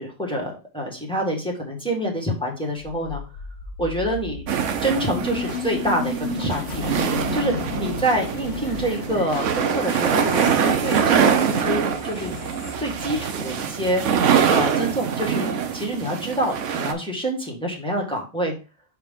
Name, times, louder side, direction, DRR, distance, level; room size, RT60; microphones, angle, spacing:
voice 1, 0.0-3.2 3.8-4.4 4.8-7.0 7.3-12.4 12.8-18.5, right 1 dB, 5° left, -1 dB, 1.6 m, -27 dB
sound 1, 2.8-13.8, left 4 dB, 75° left, 1.3 m, -33 dB
sound 2, 4.5-16.9, right 7 dB, 75° right, 1.1 m, -24 dB
6.0 x 4.6 x 3.7 m, 0.31 s
omnidirectional pair, 1.3 m